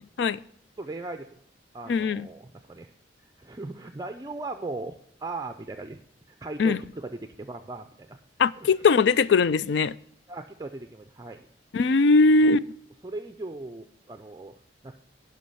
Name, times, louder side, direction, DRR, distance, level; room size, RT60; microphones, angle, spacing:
voice 1, 0.8-1.3 1.7-2.9 3.4-6.0 6.4-8.2 8.6-8.7 10.3-11.4 13.0-14.6 14.8-14.9, right 2 dB, 20° right, 0.5 m, -38 dB
voice 2, 1.9-2.3 6.6-6.8 8.4-9.9 11.7-12.6, left 4 dB, 70° left, 0.4 m, -20 dB
11.5 x 5.2 x 5.6 m
head